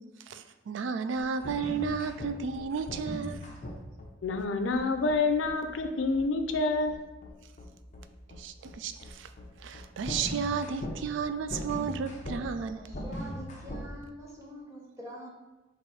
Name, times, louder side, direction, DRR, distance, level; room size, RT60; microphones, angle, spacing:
voice 1, 0.3-3.5 8.3-9.3 9.6-12.9, right 5 dB, 75° right, 0.3 m, -33 dB
Music for film intro, 1.2-13.9, equal, 40° left, 0.7 m, -40 dB
voice 2, 4.2-7.1, left 3 dB, 90° left, 0.5 m, -28 dB
voice 3, 12.8-15.3, equal, 15° right, 0.8 m, -45 dB
4.7 x 2.6 x 4.2 m
head